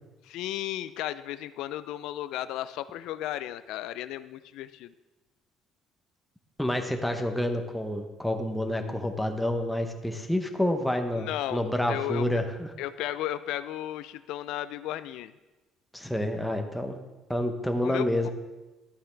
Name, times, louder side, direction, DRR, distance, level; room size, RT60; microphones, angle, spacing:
voice 1, 0.2-4.9 11.1-11.6 11.9-12.3 12.8-15.3 17.8-18.3, left 13 dB, 80° left, 14 dB, 0.3 m, -34 dB
voice 2, 6.6-12.7 15.9-17.0 17.3-18.3, left 1 dB, ahead, 4 dB, 0.7 m, -28 dB
11.5 x 9.0 x 3.3 m, 1.1 s
cardioid pair, 170°, 0 cm